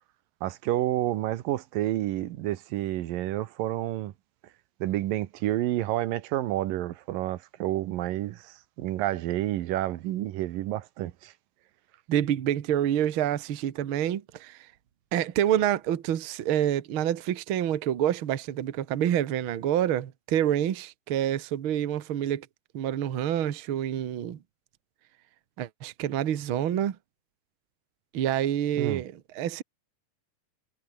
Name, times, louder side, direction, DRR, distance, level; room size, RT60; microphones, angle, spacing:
voice 1, 0.4-4.1 4.8-11.3 28.8-29.0, right 14 dB, 85° right, 2.8 m, -29 dB
voice 2, 12.1-14.6 15.1-22.5 22.7-24.4 25.6-27.0 28.1-29.6, right 10 dB, 50° right, 1.7 m, -27 dB
omnidirectional pair, 3.9 m